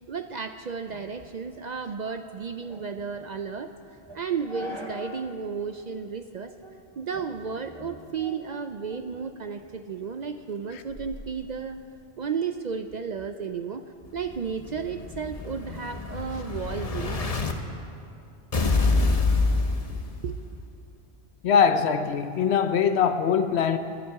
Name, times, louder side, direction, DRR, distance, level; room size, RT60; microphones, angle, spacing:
voice 1, 0.1-3.7 4.1-6.5 7.0-11.8 12.2-13.8 14.1-17.2 20.2-20.6, right 6 dB, 55° right, 0.5 m, -33 dB
sound 1, 0.9-5.3 5.7-5.8 6.4-6.8 7.1-9.2 9.6-12.0, left 1 dB, 25° right, 1.0 m, -45 dB
Explosion, 14.2-17.5 18.5-20.5, left 3 dB, 35° left, 0.9 m, -26 dB
voice 2, 21.4-23.8, left 7 dB, 75° left, 0.9 m, -22 dB
19.5 x 11.5 x 4.7 m
omnidirectional pair, 1.1 m